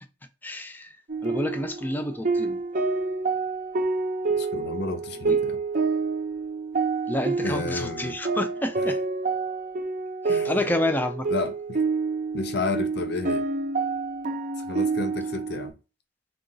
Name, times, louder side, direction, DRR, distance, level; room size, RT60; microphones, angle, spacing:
voice 1, 0.4-1.0 1.2-2.6 5.3-5.4 7.1-9.0 10.2-11.3, left 1 dB, 10° left, 0.3 m, -29 dB
sound 1, 1.1-15.7, right 4 dB, 45° right, 0.5 m, -28 dB
voice 2, 4.4-5.6 7.4-8.2 10.2-10.6 11.3-11.8 12.3-13.5 14.6-15.7, left 3 dB, 60° left, 0.5 m, -31 dB
3.7 x 2.3 x 3.8 m
head